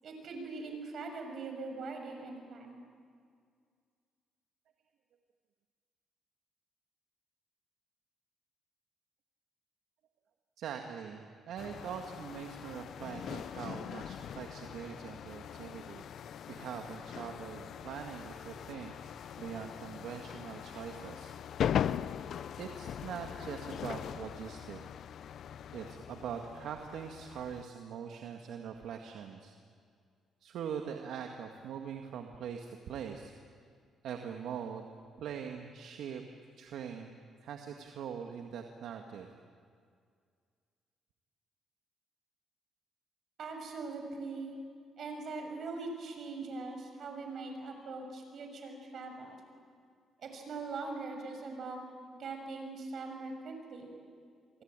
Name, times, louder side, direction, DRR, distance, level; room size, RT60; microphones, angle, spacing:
voice 1, 0.0-2.8 43.4-44.6 45.0-49.4 50.2-53.9, right 3 dB, 55° right, 4 dB, 6.8 m, -41 dB
voice 2, 10.6-21.3 22.6-24.8 25.7-29.6 30.4-33.3 34.0-34.9 35.2-36.2 36.6-39.3, right 7 dB, 75° right, 3 dB, 1.9 m, -42 dB
sound 1, 11.6-27.6, left 9 dB, 65° left, 0.7 m, -40 dB
27.5 x 23.0 x 9.1 m, 2.1 s
cardioid pair, 100°, 0 cm